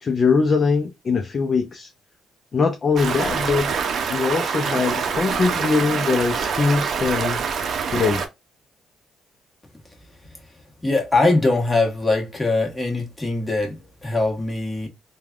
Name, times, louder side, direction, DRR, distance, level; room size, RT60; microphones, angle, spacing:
voice 1, 0.0-1.9 2.5-3.7 4.1-7.4 7.9-8.2, left 4 dB, 40° left, 0.5 m, -21 dB
Stream, 3.0-8.3, right 6 dB, 60° right, 0.6 m, -25 dB
voice 2, 10.8-14.9, left 2 dB, 15° left, 1.3 m, -22 dB
3.2 x 2.3 x 2.3 m
cardioid pair, 90°, 0 cm